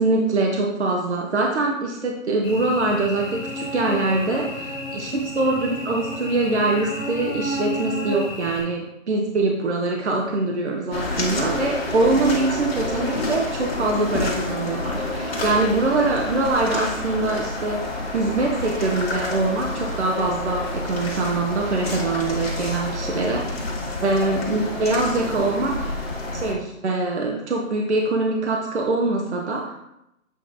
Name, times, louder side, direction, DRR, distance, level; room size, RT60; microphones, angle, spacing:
voice 1, 0.0-23.6 24.0-25.8 26.3-29.7, right 2 dB, 55° right, 0 dB, 0.9 m, -23 dB
Cricket / Buzz, 2.4-8.6, left 1 dB, 10° left, 2.2 m, -31 dB
sound 1, 10.9-26.5, left 2 dB, 45° left, 1.6 m, -29 dB
7.7 x 3.1 x 3.9 m, 0.83 s
figure-of-eight pair, 165°, 41 cm